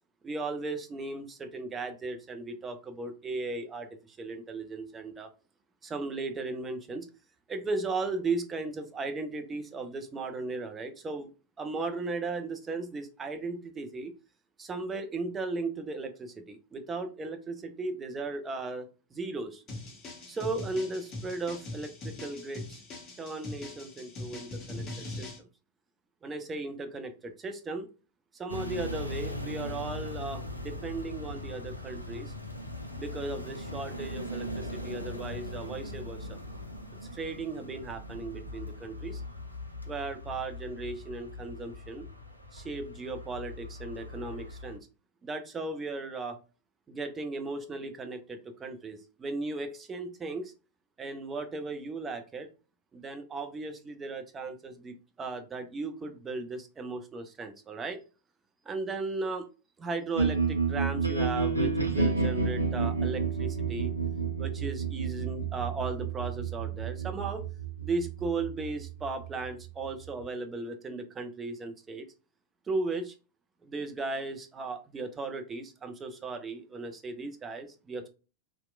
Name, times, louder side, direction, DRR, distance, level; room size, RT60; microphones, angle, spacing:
voice 1, 0.2-5.3 5.8-7.1 7.5-11.3 11.6-14.1 14.6-19.6 20.3-22.8 23.2-25.5 26.2-27.9 28.3-32.3 33.0-36.4 37.1-39.2 39.9-42.1 42.5-44.9 45.2-46.4 46.9-50.5 51.0-52.5 52.9-58.0 58.7-59.5 59.8-63.9 64.4-67.4 67.8-72.1 72.7-73.1 73.6-78.1, right 3 dB, 20° right, 6 dB, 0.4 m, -36 dB
sound 1, 19.7-25.4, left 2 dB, 30° left, 0.7 m, -41 dB
sound 2, 28.5-44.8, left 1 dB, 90° left, 0.4 m, -40 dB
sound 3, 60.1-70.2, right 4 dB, 85° right, 0.5 m, -30 dB
2.8 x 2.1 x 2.2 m, 0.33 s
figure-of-eight pair, 90°, 0 cm